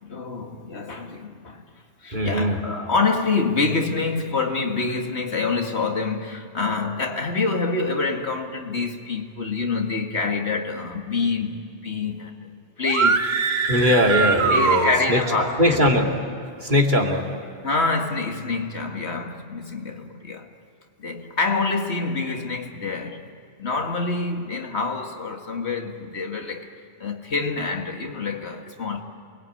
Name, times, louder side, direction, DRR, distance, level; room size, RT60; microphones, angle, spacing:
voice 1, 0.0-1.6 2.0-12.5 12.8-13.3 13.9-14.0 14.5-15.8 17.6-20.5 21.0-23.2 23.6-26.7 27.0-29.0, left 4 dB, 75° left, 2.2 m, -26 dB
voice 2, 2.1-2.6 13.7-15.2 15.6-16.1 16.6-17.2, left 1 dB, 45° right, 2.7 m, -20 dB
sound 1, 12.8-15.5, right 5 dB, 65° right, 1.4 m, -22 dB
28.5 x 21.5 x 8.6 m
omnidirectional pair, 1.1 m